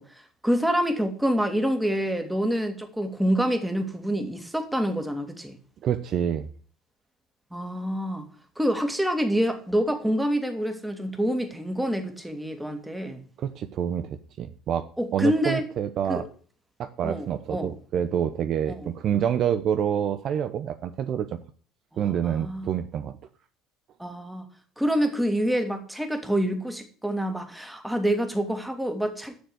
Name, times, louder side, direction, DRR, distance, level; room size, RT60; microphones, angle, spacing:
voice 1, 0.1-5.6 7.5-8.3 8.6-13.2 15.0-15.6 16.1-16.2 17.0-17.7 18.8-18.9 21.9-22.7 24.0-24.5 24.8-29.3, equal, 5° right, 6 dB, 2.4 m, -27 dB
voice 2, 5.8-6.5 13.4-14.9 15.1-16.3 16.8-21.4 22.0-23.2, right 9 dB, 50° right, 10 dB, 0.7 m, -27 dB
7.9 x 6.7 x 8.0 m, 0.42 s
hypercardioid pair, 65°, 0 cm